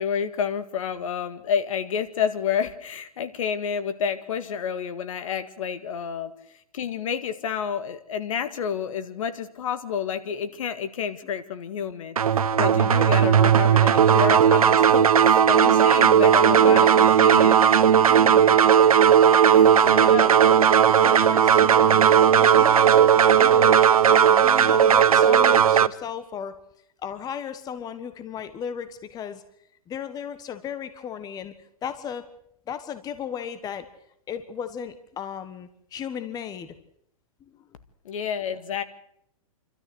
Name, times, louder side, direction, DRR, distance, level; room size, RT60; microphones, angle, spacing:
voice 1, 0.0-6.3 6.7-17.6 18.0-18.3 19.5-20.3 38.1-38.8, left 7 dB, 65° left, 11 dB, 2.0 m, -29 dB
sound 1, 12.2-25.9, right 8 dB, 90° right, 0.8 m, -16 dB
voice 2, 16.6-17.0 18.1-18.6 19.4-20.5 21.0-23.8 24.1-26.6 27.0-29.4 29.9-31.5 31.8-32.3 32.7-33.9 34.3-36.7, left 8 dB, 20° left, 12 dB, 1.4 m, -35 dB
28.5 x 13.5 x 8.0 m, 0.73 s
hypercardioid pair, 130°, 18 cm